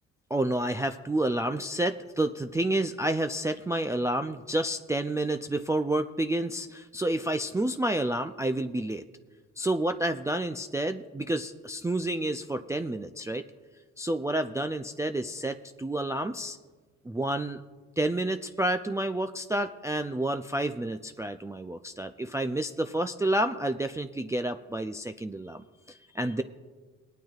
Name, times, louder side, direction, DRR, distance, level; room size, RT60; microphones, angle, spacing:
voice 1, 0.3-9.0 9.6-13.4 14.0-16.6 17.0-17.6 18.0-26.4, right 1 dB, 10° right, 6 dB, 0.4 m, -29 dB
22.0 x 9.1 x 2.4 m, 1.4 s
cardioid pair, 90°, 30 cm